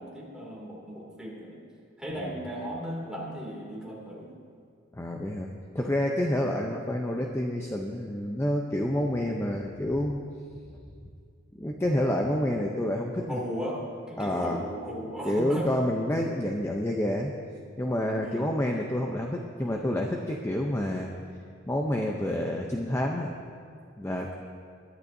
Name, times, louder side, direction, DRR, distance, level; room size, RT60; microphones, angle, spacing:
voice 1, 0.0-1.6 2.0-4.3 13.3-13.8 14.1-15.8 18.2-18.6, equal, 5° right, -4 dB, 2.5 m, -36 dB
voice 2, 4.9-10.2 11.6-13.4 14.2-14.6 15.2-17.3 17.8-21.1 21.7-23.4 24.0-24.3, left 1 dB, 15° left, 1 dB, 0.6 m, -28 dB
22.0 x 11.0 x 2.7 m, 2.2 s
head